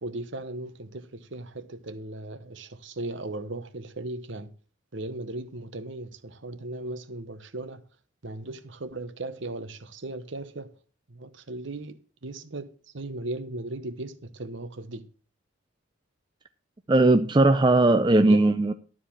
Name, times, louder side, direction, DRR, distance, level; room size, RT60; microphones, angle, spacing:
voice 1, 0.0-4.5 4.9-7.8 8.2-10.8 11.1-15.0 18.3-18.4, right 2 dB, 60° right, 1.0 m, -37 dB
voice 2, 16.9-18.7, right 2 dB, 20° right, 0.4 m, -19 dB
12.5 x 4.9 x 7.1 m
head